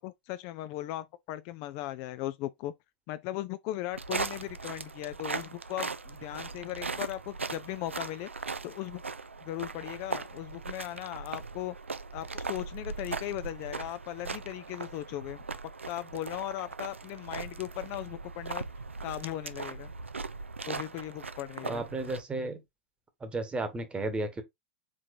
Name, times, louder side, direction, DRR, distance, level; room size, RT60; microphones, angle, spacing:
voice 1, 0.0-2.7 3.1-8.3 8.6-9.0 9.4-11.8 12.1-15.4 15.9-18.7 19.0-19.9 20.7-21.8, left 14 dB, 45° left, 0.4 m, -38 dB
sound 1, 3.9-22.2, right 4 dB, 85° right, 0.4 m, -39 dB
voice 2, 21.6-22.6 23.2-24.4, right 2 dB, 15° right, 1.1 m, -33 dB
4.9 x 3.7 x 2.6 m
figure-of-eight pair, 95°, 6 cm